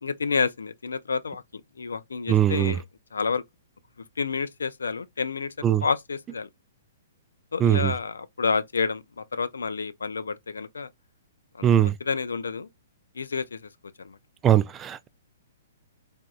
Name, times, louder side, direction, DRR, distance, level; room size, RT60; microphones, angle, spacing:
voice 1, 0.0-1.4 1.8-2.8 3.1-3.4 4.2-5.5 5.8-6.5 7.5-10.9 11.5-12.7 13.2-13.7 14.0-14.2, left 5 dB, 90° left, 0.4 m, -29 dB
voice 2, 2.3-2.7 5.6-5.8 7.6-7.9 11.6-11.9 14.4-15.1, right 10 dB, 20° right, 0.3 m, -21 dB
3.4 x 2.6 x 2.3 m
hypercardioid pair, 135°, 0 cm